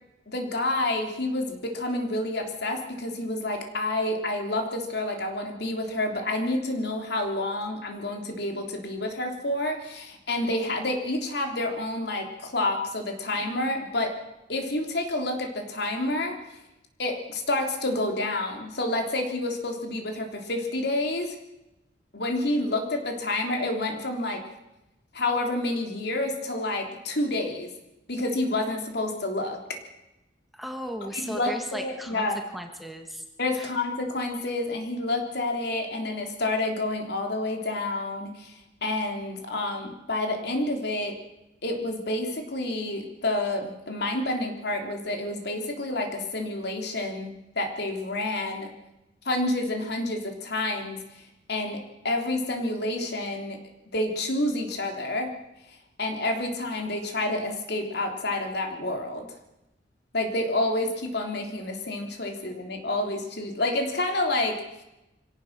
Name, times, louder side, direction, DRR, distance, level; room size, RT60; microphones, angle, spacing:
voice 1, 0.3-14.2 14.5-16.4 17.0-21.4 22.1-24.4 25.1-27.7 28.1-29.8 31.1-31.5 31.8-32.4 33.4-38.5 38.8-41.2 41.6-48.7 49.2-51.2 51.5-53.6 53.9-55.3 56.0-59.3 60.1-64.6, left 2 dB, 60° left, 3 dB, 3.4 m, -29 dB
voice 2, 30.5-32.3 32.5-33.2 33.5-33.7, equal, ahead, 4 dB, 1.6 m, -36 dB
24.5 x 17.0 x 6.7 m, 0.95 s
head